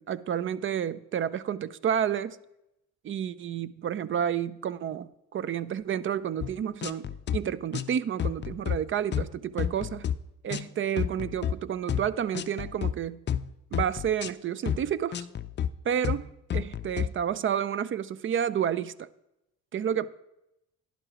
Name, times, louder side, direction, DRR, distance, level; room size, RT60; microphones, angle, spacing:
voice 1, 0.0-2.4 3.0-10.1 10.4-13.2 13.7-15.3 15.8-19.1 19.7-20.1, right 9 dB, 45° right, 0.4 m, -30 dB
sound 1, 6.4-6.5 6.8-7.4 7.7-7.9 8.2-8.8 9.1-9.3 9.6-10.2 10.5-10.7 11.0-11.5 11.9-12.1 12.3-12.9 13.3-13.5 13.7-14.3 14.7-14.8 15.1-15.7 16.0-16.2 16.5-17.1, left 9 dB, 35° left, 0.4 m, -30 dB
11.5 x 10.0 x 3.0 m
cardioid pair, 90°, 30 cm